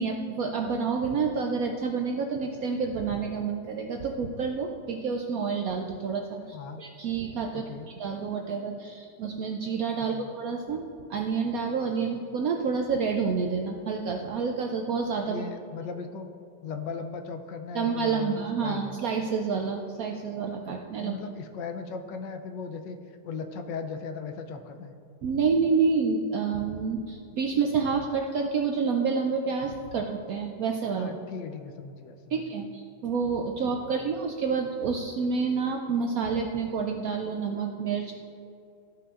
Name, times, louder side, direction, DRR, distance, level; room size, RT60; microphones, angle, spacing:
voice 1, 0.0-15.4 17.7-21.2 25.2-31.1 32.3-38.1, right 5 dB, 75° right, 2 dB, 0.8 m, -29 dB
voice 2, 6.5-6.8 7.5-7.9 10.0-10.3 15.3-16.3 16.6-18.9 21.0-24.9 30.9-32.4 34.0-34.1, left 5 dB, 75° left, 7 dB, 1.2 m, -37 dB
13.5 x 5.7 x 2.4 m, 2.5 s
omnidirectional pair, 2.0 m